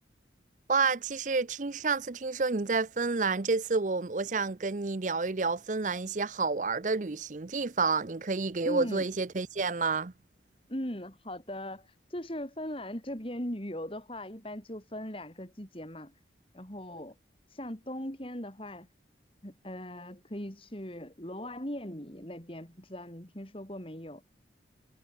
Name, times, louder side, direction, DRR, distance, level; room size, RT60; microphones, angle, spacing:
voice 1, 0.7-10.1, right 4 dB, 40° right, 0.6 m, -29 dB
voice 2, 8.6-9.1 10.7-16.1 16.5-17.1 17.5-18.9 19.4-24.2, left 1 dB, 30° left, 4.0 m, -39 dB
head